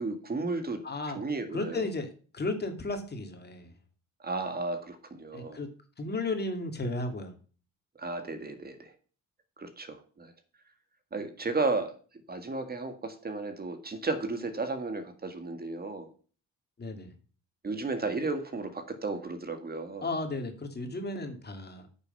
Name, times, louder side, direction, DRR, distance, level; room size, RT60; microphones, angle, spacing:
voice 1, 0.0-0.8 1.1-1.9 4.2-5.6 8.0-8.9 9.6-10.3 11.1-12.0 12.3-16.1 17.6-20.1, right 3 dB, 30° right, 7 dB, 1.9 m, -33 dB
voice 2, 0.8-1.2 1.5-3.7 5.3-5.7 6.0-7.3 16.8-17.1 20.0-21.9, left 2 dB, 35° left, 5 dB, 2.4 m, -34 dB
9.0 x 6.9 x 5.4 m, 0.39 s
cardioid pair, 90°, 30 cm